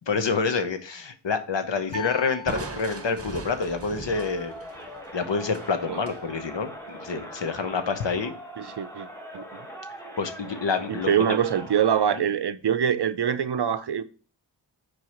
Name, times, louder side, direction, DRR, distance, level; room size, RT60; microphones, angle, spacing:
voice 1, 0.1-4.5 5.1-8.3 10.2-11.4 12.1-12.2, left 5 dB, 65° left, 1.0 m, -27 dB
sound 1, 1.9-3.4, left 5 dB, 40° left, 3.5 m, -40 dB
Crushing, 2.5-6.2, right 3 dB, 30° right, 0.9 m, -39 dB
Crowd, 4.1-12.2, equal, 5° left, 1.4 m, -41 dB
voice 2, 8.6-9.1 9.3-9.4 10.9-14.0, right 8 dB, 60° right, 0.6 m, -24 dB
4.7 x 4.7 x 5.6 m
wide cardioid pair, 100°, 47 cm